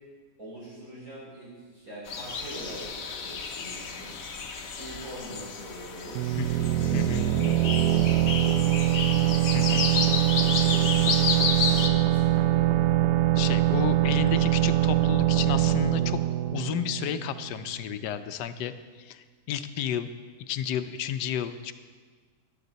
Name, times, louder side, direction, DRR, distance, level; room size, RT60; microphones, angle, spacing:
voice 1, 0.4-4.3 4.8-12.6, equal, 55° right, -8 dB, 5.3 m, -43 dB
sound 1, 2.1-11.9, left 5 dB, 60° left, 1.3 m, -31 dB
sound 2, 6.1-17.6, right 14 dB, 85° right, 1.2 m, -23 dB
voice 2, 6.9-7.3 9.5-9.9 13.4-16.2 16.5-20.1 20.5-21.7, left 10 dB, 90° left, 11 dB, 1.2 m, -32 dB
14.0 x 11.5 x 4.0 m, 1.5 s
omnidirectional pair, 1.8 m